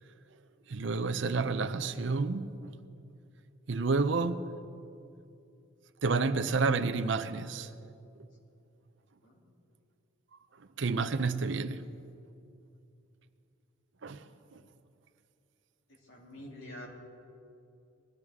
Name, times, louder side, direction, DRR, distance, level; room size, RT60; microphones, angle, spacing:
voice 1, 0.7-2.8 3.7-4.4 6.0-7.7 10.8-11.8 14.0-14.3 14.5-14.6, right 4 dB, 60° right, 0.6 m, -30 dB
voice 2, 16.0-16.9, left 1 dB, 70° left, 2.8 m, -46 dB
20.0 x 12.0 x 3.6 m
head